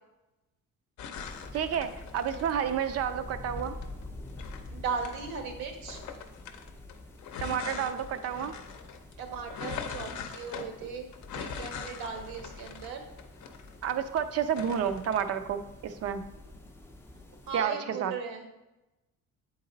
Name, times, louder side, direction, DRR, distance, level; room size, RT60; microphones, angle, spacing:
sound 1, 1.0-3.0 3.6-5.4 5.9-14.2 14.5-15.2, left 6 dB, 55° left, 0.7 m, -42 dB
sound 2, 1.1-17.6, left 2 dB, 5° left, 0.5 m, -47 dB
voice 1, 1.5-3.7 7.4-8.5 13.8-16.2 17.5-18.1, right 8 dB, 45° right, 10 dB, 0.5 m, -30 dB
voice 2, 2.2-2.5 4.7-6.0 9.2-11.1 11.3-13.1 17.5-18.5, right 5 dB, 90° right, 4 dB, 1.3 m, -37 dB
8.4 x 4.0 x 3.9 m, 0.99 s
cardioid pair, 165°, 34 cm